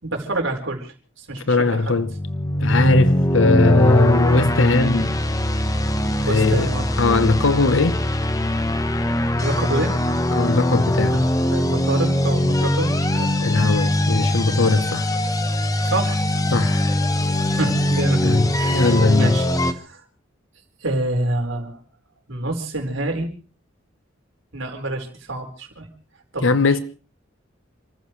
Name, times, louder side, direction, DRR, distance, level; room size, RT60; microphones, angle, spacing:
voice 1, 0.0-1.9 6.3-6.9 9.4-10.0 11.1-13.3 15.8-16.2 17.5-20.0 20.8-21.8 22.3-23.3 24.5-25.9 26.3-26.5, right 2 dB, 80° right, 4.7 m, -27 dB
voice 2, 1.5-2.1 2.6-5.1 6.2-6.7 7.0-8.0 10.3-11.2 13.4-15.1 16.5-16.9 18.2-19.3 26.4-26.8, left 3 dB, 80° left, 1.0 m, -19 dB
sound 1, 1.9-19.7, left 1 dB, 20° left, 1.0 m, -21 dB
29.5 x 15.0 x 3.2 m
head